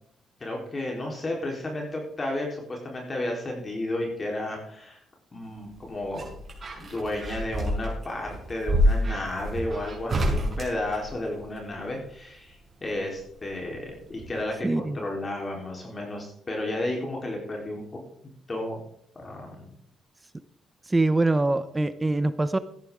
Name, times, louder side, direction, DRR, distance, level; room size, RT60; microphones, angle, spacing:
voice 1, 0.4-5.0 5.3-6.3 6.7-12.6 12.8-17.8 18.5-18.8 19.2-19.7, left 1 dB, 30° left, 0 dB, 4.0 m, -32 dB
sound 1, 5.6-11.6 13.1-13.9 14.2-14.3, equal, 35° right, 5.5 m, -28 dB
voice 2, 14.6-15.0 20.9-22.6, right 2 dB, 20° right, 13 dB, 0.8 m, -24 dB
14.5 x 10.5 x 3.8 m, 0.67 s
cardioid pair, 90°, 0 cm